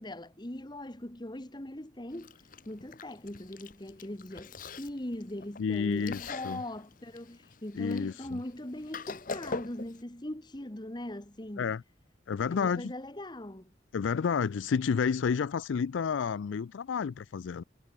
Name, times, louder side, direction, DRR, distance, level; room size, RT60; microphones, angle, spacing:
voice 1, 0.0-2.4 2.6-11.7 12.5-13.7, left 1 dB, 20° left, 1.4 m, -40 dB
Chewing mastication, 2.1-10.0, left 4 dB, 45° left, 0.9 m, -44 dB
voice 2, 5.6-6.6 7.8-8.4 11.6-11.8 12.3-12.9 13.9-17.6, left 6 dB, 75° left, 0.4 m, -30 dB
head